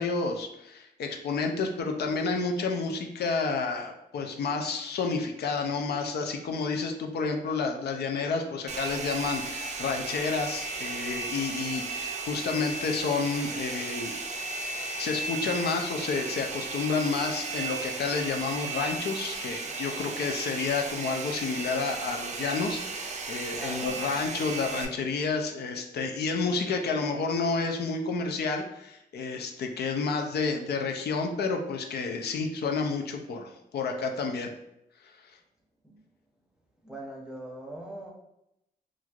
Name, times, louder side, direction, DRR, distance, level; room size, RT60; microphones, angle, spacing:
voice 1, 0.0-14.3 14.6-34.5 35.0-35.3, left 4 dB, 80° left, 3 dB, 0.4 m, -30 dB
Domestic sounds home sounds, 8.7-24.9, right 4 dB, 45° right, 0.4 m, -35 dB
voice 2, 23.6-24.1 35.8-36.0 36.8-38.1, right 1 dB, 5° right, -1 dB, 0.7 m, -41 dB
3.0 x 2.4 x 2.3 m, 0.84 s
cardioid pair, 75°, 17 cm